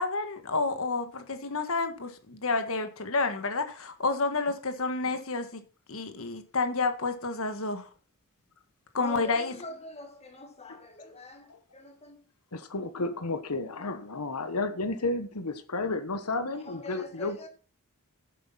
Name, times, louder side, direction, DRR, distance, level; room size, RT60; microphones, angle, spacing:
voice 1, 0.0-5.6 5.9-7.9 8.9-9.5, left 3 dB, 65° left, 1.6 m, -30 dB
voice 2, 9.0-12.2 13.6-13.9 16.2-17.5, left 3 dB, 30° left, 2.1 m, -44 dB
voice 3, 12.5-17.4, left 2 dB, 90° left, 1.2 m, -32 dB
10.0 x 7.9 x 5.7 m
head